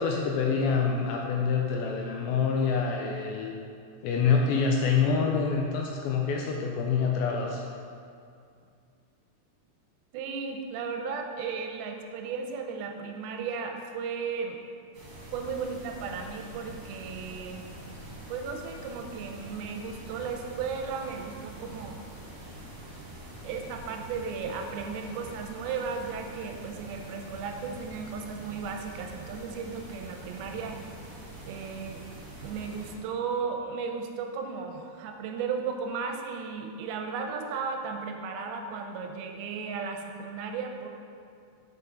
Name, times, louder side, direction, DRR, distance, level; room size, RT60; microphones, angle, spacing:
voice 1, 0.0-3.6 4.0-7.6, left 5 dB, 80° left, 0 dB, 2.2 m, -26 dB
voice 2, 10.1-14.6 15.3-17.7 18.3-22.0 23.4-30.8 31.5-32.0 32.4-40.9, right 5 dB, 85° right, 3 dB, 2.4 m, -35 dB
sound 1, 14.9-33.0, right 1 dB, 55° right, 1.9 m, -45 dB
5.7 x 5.3 x 3.7 m, 2.4 s
omnidirectional pair, 4.5 m